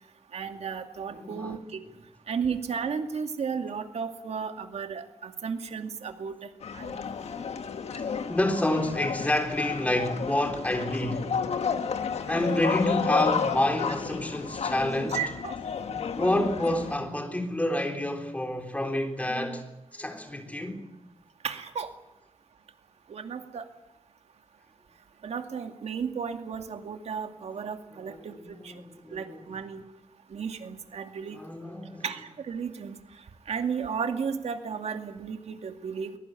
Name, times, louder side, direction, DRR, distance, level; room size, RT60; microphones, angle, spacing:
voice 1, 0.3-1.8 2.3-7.0 15.1-15.5 21.4-21.9 23.1-23.7 25.2-28.3 28.6-28.8 29.1-29.8 30.3-31.4 32.0-33.0 33.5-36.2, right 6 dB, 85° right, 2.4 m, -34 dB
voice 2, 1.2-1.5 8.3-11.3 12.3-15.2 16.1-19.6 19.9-20.8 28.1-29.4 31.4-32.0, left 1 dB, 15° left, 3.8 m, -28 dB
sound 1, 6.6-17.0, left 6 dB, 80° left, 1.9 m, -32 dB
22.5 x 21.5 x 9.2 m
wide cardioid pair, 145°, 11 cm